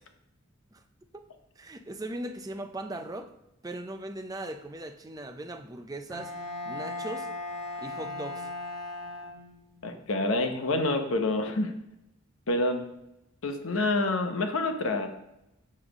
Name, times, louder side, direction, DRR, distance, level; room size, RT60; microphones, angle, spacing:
voice 1, 1.6-3.3 3.6-6.3 6.7-7.3 7.8-8.5, right 1 dB, 15° right, 7 dB, 0.4 m, -39 dB
Bowed string instrument, 6.1-9.8, left 2 dB, ahead, 1.9 m, -37 dB
voice 2, 9.8-11.7 12.5-12.9 13.4-15.1, left 2 dB, 75° left, 6 dB, 0.9 m, -27 dB
7.1 x 3.3 x 6.0 m, 0.85 s
head